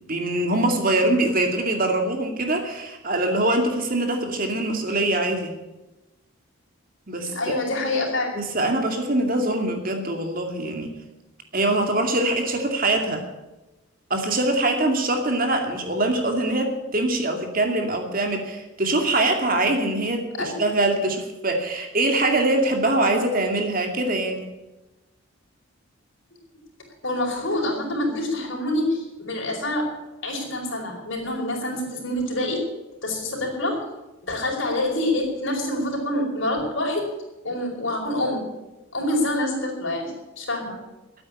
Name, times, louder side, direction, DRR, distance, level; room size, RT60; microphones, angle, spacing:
voice 1, 0.0-5.5 7.1-7.5 8.4-10.9 11.5-13.2 14.1-24.5, right 2 dB, 40° right, 4 dB, 2.4 m, -23 dB
voice 2, 7.2-8.5 20.4-20.6 27.0-29.9 30.2-32.6 33.0-33.8 34.2-37.1 37.4-38.5 38.9-40.8, left 1 dB, 55° left, 0 dB, 5.1 m, -26 dB
13.0 x 9.3 x 9.8 m, 1.0 s
head